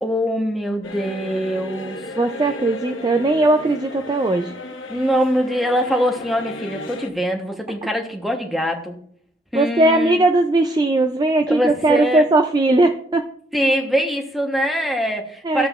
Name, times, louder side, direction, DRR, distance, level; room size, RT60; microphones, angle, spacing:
voice 1, 0.0-2.0 4.9-9.0 9.5-10.2 11.5-12.2 13.5-15.7, equal, ahead, 3 dB, 0.9 m, -23 dB
sound 1, 0.8-7.1, left 2 dB, 85° left, 1.0 m, -34 dB
voice 2, 2.2-4.5 9.5-13.3 15.4-15.7, right 2 dB, 20° right, 6 dB, 0.3 m, -18 dB
13.0 x 7.3 x 2.4 m, 0.63 s
head